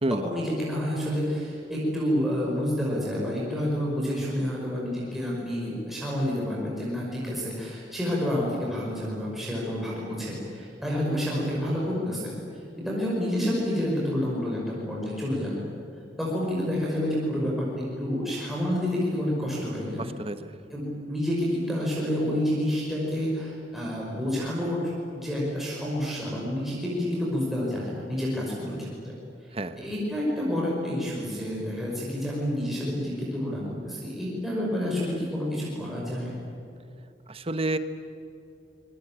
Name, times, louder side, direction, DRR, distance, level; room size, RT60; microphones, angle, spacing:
voice 1, 0.2-15.7 16.2-20.1 20.7-29.1 29.4-36.3, equal, ahead, -5 dB, 5.3 m, -29 dB
voice 2, 20.0-20.6 29.5-29.8 37.3-37.8, right 1 dB, 35° right, 10 dB, 1.3 m, -29 dB
26.0 x 21.5 x 8.9 m, 2.7 s
head